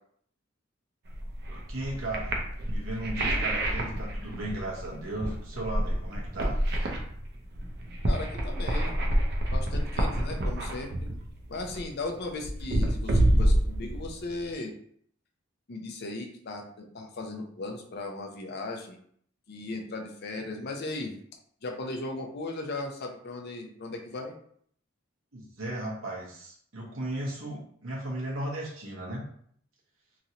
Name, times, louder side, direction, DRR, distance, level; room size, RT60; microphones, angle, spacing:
sound 1, 1.1-14.5, right 1 dB, 55° right, 0.6 m, -28 dB
voice 1, 1.5-2.4 2.7-6.6 25.3-29.2, right 1 dB, 85° right, -4 dB, 0.9 m, -36 dB
voice 2, 8.1-9.0 9.5-11.1 11.5-14.7 15.7-19.0 19.5-21.1 21.6-24.3, left 2 dB, 55° left, 2 dB, 0.5 m, -37 dB
3.0 x 2.6 x 2.8 m, 0.63 s
head